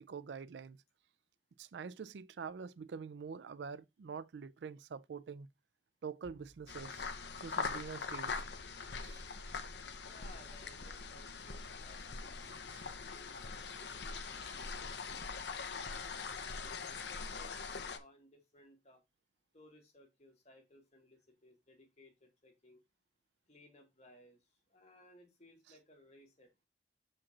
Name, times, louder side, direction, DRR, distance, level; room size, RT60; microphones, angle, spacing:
voice 1, 0.1-0.8 1.6-5.5 6.0-7.1 7.4-8.4 9.0-9.2 12.7-12.9, right 6 dB, 70° right, 0.4 m, -46 dB
sound 1, 6.2-9.1, right 2 dB, 50° right, 0.8 m, -65 dB
sound 2, 6.7-18.0, left 4 dB, 70° left, 0.8 m, -42 dB
voice 2, 10.1-12.7 13.1-15.5 16.6-19.0 19.5-22.8 23.5-26.5, left 1 dB, 40° left, 2.2 m, -62 dB
7.2 x 5.1 x 2.9 m
head